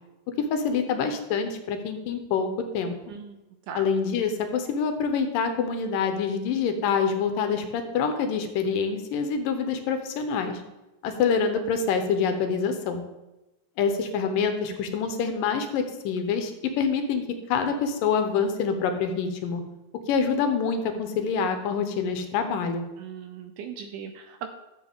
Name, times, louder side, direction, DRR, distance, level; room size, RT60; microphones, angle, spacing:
voice 1, 0.4-2.5 2.7-3.0 3.7-10.6 11.0-13.0 13.8-17.2 17.5-19.6 20.1-22.8, left 6 dB, 75° left, 6 dB, 2.4 m, -26 dB
voice 2, 3.1-3.4 3.7-3.9 23.0-24.5, right 7 dB, 80° right, 6 dB, 1.9 m, -38 dB
12.0 x 7.6 x 3.6 m, 1.0 s
omnidirectional pair, 4.1 m